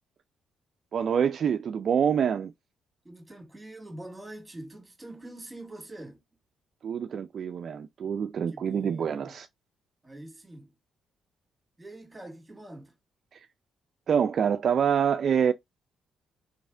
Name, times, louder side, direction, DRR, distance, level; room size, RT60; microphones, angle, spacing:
voice 1, 0.9-2.5 6.8-9.5 14.1-15.5, right 7 dB, 55° right, 0.3 m, -26 dB
voice 2, 3.0-6.2 8.5-9.4 10.0-10.7 11.8-13.0, right 1 dB, 10° right, 1.8 m, -44 dB
3.2 x 3.2 x 3.6 m
cardioid pair, 90°, 0 cm